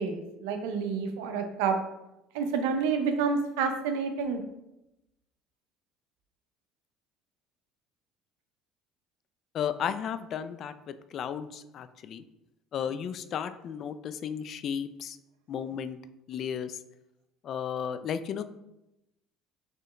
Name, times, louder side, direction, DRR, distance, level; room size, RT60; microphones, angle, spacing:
voice 1, 0.0-1.8 2.3-4.4, right 5 dB, 85° right, 6 dB, 0.6 m, -29 dB
voice 2, 9.5-12.2 12.7-15.2 15.5-16.0 16.3-16.8 17.4-18.4, left 8 dB, 50° left, 12 dB, 0.3 m, -34 dB
4.5 x 3.1 x 3.2 m, 0.89 s
supercardioid pair, 95°, 0 cm